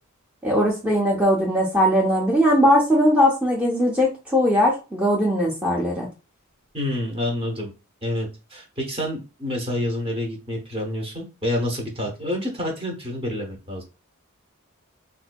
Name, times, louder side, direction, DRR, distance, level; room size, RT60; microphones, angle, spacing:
voice 1, 0.4-6.1, equal, 5° right, -5 dB, 0.6 m, -19 dB
voice 2, 6.7-7.7 8.0-13.8, left 1 dB, 25° right, 0 dB, 0.9 m, -28 dB
3.8 x 2.5 x 2.2 m, 0.30 s
head